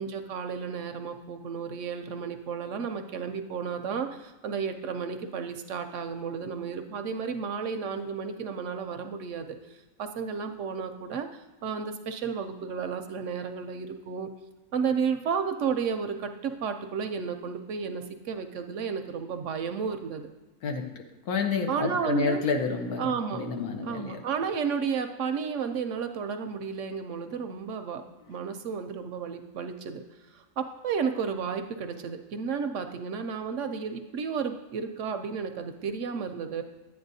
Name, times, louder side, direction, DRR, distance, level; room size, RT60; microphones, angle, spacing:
voice 1, 0.0-14.3 14.7-20.3 21.7-22.4 23.0-23.4 23.8-28.0 28.3-30.0 30.3-36.6, right 6 dB, 65° right, 7 dB, 0.8 m, -32 dB
voice 2, 21.2-24.2, left 4 dB, 85° left, 4 dB, 1.4 m, -29 dB
10.5 x 8.7 x 2.7 m, 1.2 s
omnidirectional pair, 1.5 m